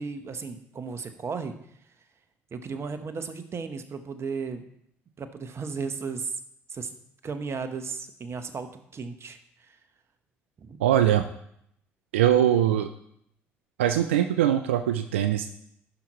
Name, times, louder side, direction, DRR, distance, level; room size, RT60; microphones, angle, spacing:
voice 1, 0.0-1.6 2.5-4.7 5.2-6.3 6.7-6.9 7.2-9.8 10.6-10.8, right 5 dB, 45° right, 9 dB, 1.1 m, -35 dB
voice 2, 10.8-11.3 12.1-12.9 13.8-15.5, right 11 dB, 90° right, 8 dB, 0.4 m, -22 dB
14.0 x 5.9 x 3.0 m, 0.73 s
hypercardioid pair, 55°, 6 cm